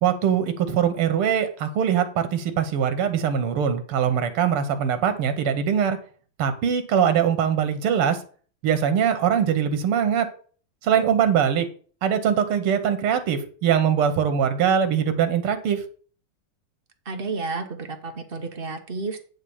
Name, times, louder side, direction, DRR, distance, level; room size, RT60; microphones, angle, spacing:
voice 1, 0.0-6.0 6.4-8.2 8.6-10.3 10.8-11.7 12.0-15.8, right 8 dB, 90° right, 9 dB, 2.0 m, -22 dB
voice 2, 17.0-19.2, right 3 dB, 35° right, 5 dB, 1.0 m, -31 dB
9.9 x 3.7 x 7.1 m, 0.42 s
omnidirectional pair, 2.4 m